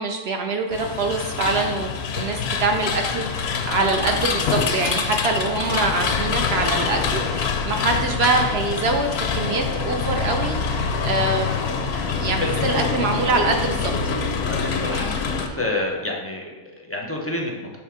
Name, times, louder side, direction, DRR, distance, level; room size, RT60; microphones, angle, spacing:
voice 1, 0.0-13.9, right 3 dB, 60° right, 3 dB, 0.7 m, -24 dB
sound 1, 0.7-15.5, left 5 dB, 60° left, 0.7 m, -25 dB
voice 2, 12.2-12.9 14.4-17.8, left 2 dB, 20° left, -1 dB, 0.3 m, -29 dB
6.3 x 3.5 x 4.7 m, 1.2 s
omnidirectional pair, 1.5 m